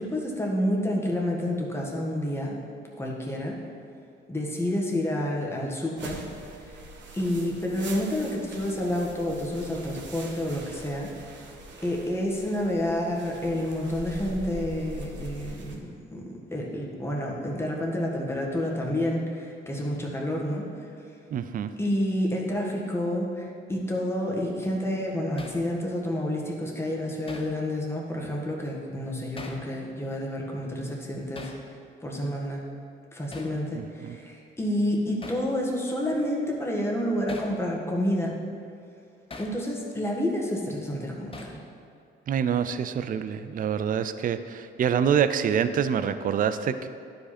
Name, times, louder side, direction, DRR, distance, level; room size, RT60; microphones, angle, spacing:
voice 1, 0.0-2.7 3.0-3.6 4.3-6.3 6.5-6.8 7.1-11.1 11.8-16.2 16.5-20.7 21.8-31.5 32.0-32.6 33.1-38.4 39.4-41.6, left 1 dB, 10° left, -2 dB, 1.6 m, -29 dB
sound 1, 6.0-15.8, right 2 dB, 65° right, 1.2 m, -42 dB
voice 2, 21.3-21.7 33.7-34.2 42.3-46.9, right 8 dB, 45° right, 12 dB, 0.4 m, -26 dB
Hammer, 25.4-25.6 27.3-27.5 29.4-29.7 31.3-31.6 33.3-33.6 35.2-35.5 37.3-37.6 39.3-39.6 41.3-41.6, left 3 dB, 25° left, 1.0 m, -41 dB
11.0 x 5.1 x 4.3 m, 2.5 s
cardioid pair, 90°, 20 cm